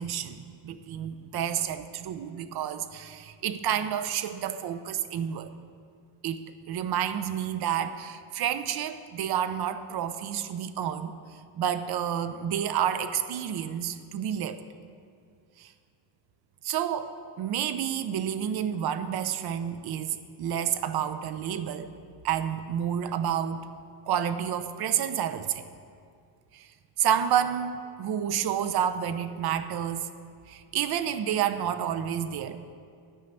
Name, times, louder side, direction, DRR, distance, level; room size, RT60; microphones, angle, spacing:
voice 1, 0.0-5.5 6.2-11.1 11.6-14.6 15.6-15.7 16.6-21.9 22.2-23.6 24.1-25.6 26.5-26.7 27.0-30.1 30.5-32.6, right 9 dB, 55° right, 11 dB, 0.8 m, -29 dB
13.0 x 5.6 x 7.9 m, 2.3 s
cardioid pair, 120°, 47 cm